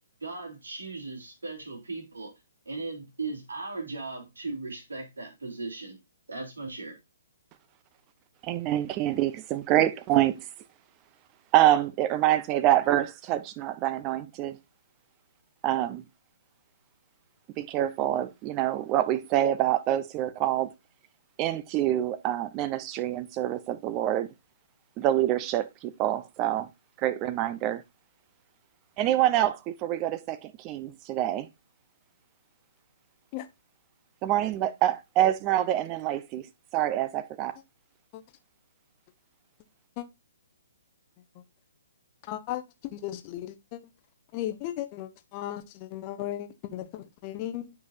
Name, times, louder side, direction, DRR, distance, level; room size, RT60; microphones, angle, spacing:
voice 1, 0.2-2.3 2.6-6.0 6.3-7.0, right 3 dB, 85° right, 3.4 m, -37 dB
voice 2, 8.4-10.4 11.5-14.6 15.6-16.1 17.6-20.7 21.4-24.3 25.0-26.7 27.0-27.8 29.0-31.5 34.2-36.4 36.7-37.5, right 13 dB, 30° right, 0.8 m, -26 dB
voice 3, 42.2-43.8 44.3-47.7, left 13 dB, 35° left, 0.9 m, -36 dB
9.4 x 5.3 x 2.7 m
hypercardioid pair, 135°, 0 cm